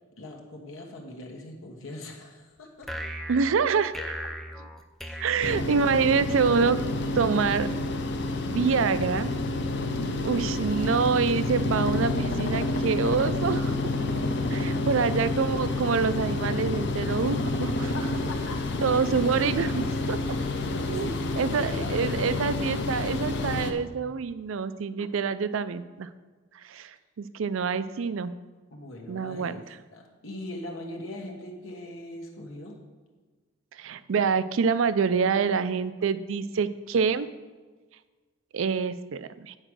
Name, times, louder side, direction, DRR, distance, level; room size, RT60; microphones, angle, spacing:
voice 1, 0.2-3.1 5.0-5.3 9.7-10.4 14.4-15.0 17.9-18.6 20.0-20.2 20.7-22.2 28.7-29.6 29.9-32.8, left 1 dB, 80° left, 0 dB, 1.3 m, -41 dB
sound 1, 2.8-6.3, equal, ahead, 0.5 m, -38 dB
voice 2, 3.3-4.1 5.2-6.8 7.2-7.7 8.5-9.3 10.2-13.8 14.5-17.9 18.8-20.2 20.9-21.1 21.4-26.1 26.6-28.3 29.1-29.6 33.8-37.3 38.5-39.6, right 5 dB, 70° right, 14 dB, 0.4 m, -26 dB
sound 2, 5.4-23.7, left 2 dB, 55° left, 0.7 m, -29 dB
8.9 x 4.9 x 6.2 m, 1.4 s
head